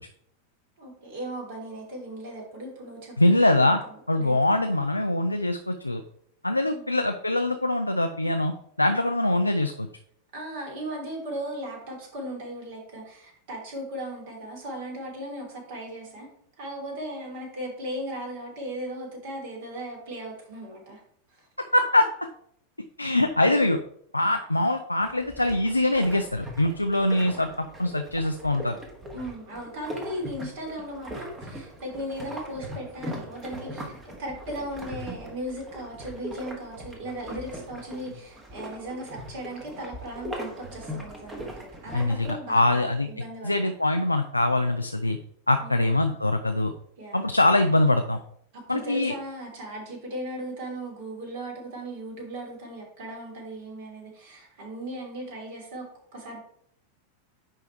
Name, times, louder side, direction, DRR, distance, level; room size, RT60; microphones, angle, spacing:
voice 1, 0.8-4.6 6.5-6.8 10.3-16.3 16.6-21.0 21.3-21.5 29.1-43.5 45.6-46.0 47.0-47.3 48.5-56.4, right 1 dB, 50° right, -1 dB, 3.1 m, -37 dB
voice 2, 3.2-3.8 4.1-6.0 6.4-8.5 8.8-9.9 21.7-22.1 23.0-23.8 24.1-27.5 27.8-28.8 41.9-43.1 43.4-45.2 45.5-46.7 47.1-48.2 48.7-49.1, left 1 dB, 85° left, 6 dB, 0.4 m, -23 dB
sound 1, 25.0-42.3, equal, 15° right, 1.6 m, -40 dB
10.0 x 3.5 x 4.5 m, 0.67 s
figure-of-eight pair, 90°, 0 cm